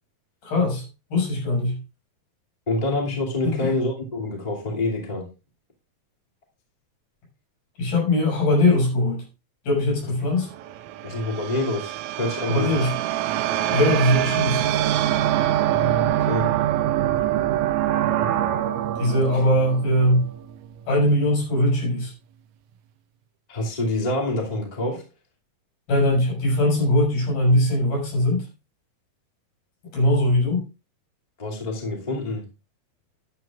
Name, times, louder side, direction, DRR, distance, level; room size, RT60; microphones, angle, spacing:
voice 1, 0.4-0.8 1.1-1.8 3.4-3.7 7.8-9.2 9.7-10.5 12.5-12.9 13.7-14.6 19.0-20.3 20.9-22.1 25.9-28.5 29.9-30.6, left 1 dB, 90° left, -2 dB, 8.0 m, -21 dB
voice 2, 2.7-5.3 11.0-11.9 12.2-12.9 15.7-16.5 23.5-25.0 31.4-32.4, left 2 dB, 15° left, -2 dB, 2.1 m, -27 dB
sound 1, 10.3-20.7, right 12 dB, 80° right, 1.6 m, -24 dB
13.5 x 10.5 x 2.5 m, 0.29 s
omnidirectional pair, 4.1 m